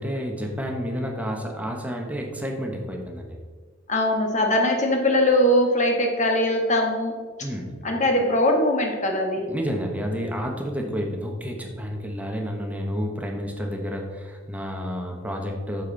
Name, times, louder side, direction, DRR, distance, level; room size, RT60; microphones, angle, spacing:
voice 1, 0.0-3.4 7.4-7.7 9.5-15.8, equal, 5° right, 1 dB, 1.2 m, -30 dB
voice 2, 3.9-7.2 7.8-9.5 10.9-11.0, left 1 dB, 35° left, 2 dB, 1.5 m, -21 dB
8.0 x 7.0 x 4.0 m, 1.5 s
head